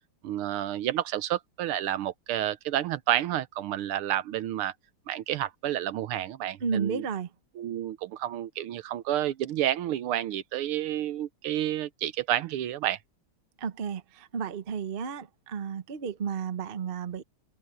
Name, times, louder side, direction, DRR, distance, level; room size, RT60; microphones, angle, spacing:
voice 1, 0.2-4.7 5.1-7.0 7.6-13.0, right 12 dB, 80° right, 1.7 m, -30 dB
voice 2, 6.6-7.3 13.6-17.2, right 6 dB, 50° right, 0.6 m, -32 dB
omnidirectional pair, 2.4 m